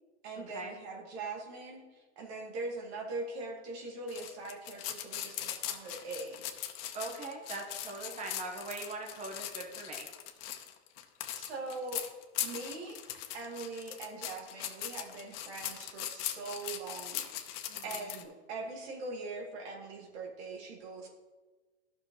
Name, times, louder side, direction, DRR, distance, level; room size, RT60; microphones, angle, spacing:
voice 1, 0.2-6.4 11.3-12.1 12.4-13.0 13.3-21.1, right 3 dB, 65° right, 1 dB, 1.9 m, -42 dB
sound 1, 4.1-18.2, left 11 dB, 55° left, 1.0 m, -40 dB
voice 2, 6.9-10.1 17.7-17.8, right 3 dB, 20° right, 2 dB, 1.1 m, -41 dB
12.0 x 6.0 x 3.1 m, 1.3 s
hypercardioid pair, 115°, 35 cm